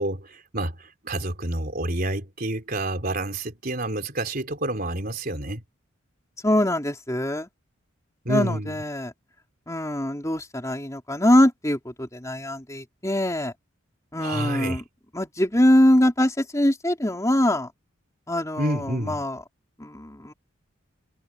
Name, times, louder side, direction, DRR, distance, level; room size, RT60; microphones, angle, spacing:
voice 1, 0.0-5.6 8.3-8.8 14.2-14.8 18.6-19.2, right 1 dB, 45° right, 3.7 m, -29 dB
voice 2, 6.4-7.5 8.3-9.1 9.7-13.5 14.1-14.8 15.1-17.7 18.3-19.4 19.8-20.3, left 1 dB, 15° left, 3.5 m, -23 dB
head